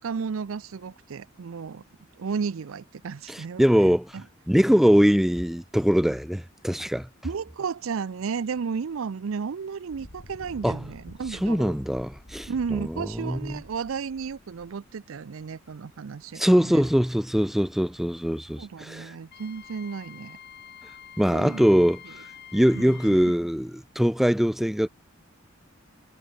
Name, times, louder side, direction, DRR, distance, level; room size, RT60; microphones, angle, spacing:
voice 1, 0.0-1.8 2.2-3.6 4.1-4.2 7.2-11.8 12.5-16.9 18.6-20.4 21.3-21.6 22.7-23.2, right 5 dB, 75° right, 0.5 m, -33 dB
voice 2, 3.3-4.1 4.5-7.1 10.6-10.8 11.4-13.6 16.4-19.1 21.2-22.0 22.5-24.9, equal, ahead, 0.5 m, -22 dB
Engine, 7.8-8.0 8.4-8.6 9.8-15.6 16.5-16.6 17.0-17.8 19.5-19.7 20.0-20.1 20.6-20.7 21.0-21.5 22.1-22.2 22.8-23.3, left 1 dB, 80° left, 4.1 m, -49 dB
Wind instrument woodwind instrument, 19.3-23.4, left 9 dB, 55° left, 2.3 m, -47 dB
head